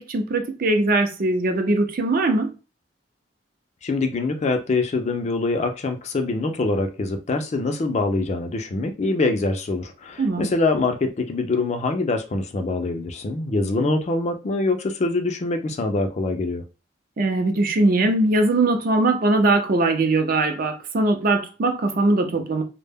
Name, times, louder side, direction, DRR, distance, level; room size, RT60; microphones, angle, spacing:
voice 1, 0.0-2.5 10.2-10.5 13.8-14.0 17.2-22.6, right 2 dB, 50° right, 0.5 m, -21 dB
voice 2, 3.8-16.6, left 3 dB, 40° left, 0.4 m, -24 dB
2.1 x 2.0 x 3.4 m
head